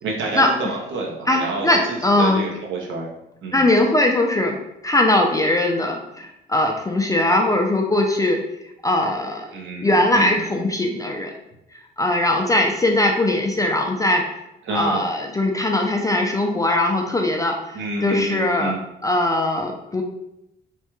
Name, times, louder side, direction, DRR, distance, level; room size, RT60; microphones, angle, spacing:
voice 1, 0.0-3.1 3.4-3.6 9.5-10.7 14.7-15.0 17.7-18.8, right 2 dB, 75° right, -1 dB, 0.8 m, -28 dB
voice 2, 1.3-2.4 3.5-4.6 4.8-8.4 8.8-9.5 9.8-11.3 12.0-14.2 14.7-18.7 19.0-20.0, left 1 dB, 15° left, 2 dB, 0.4 m, -20 dB
3.3 x 2.2 x 3.0 m, 0.86 s
cardioid pair, 90°, 20 cm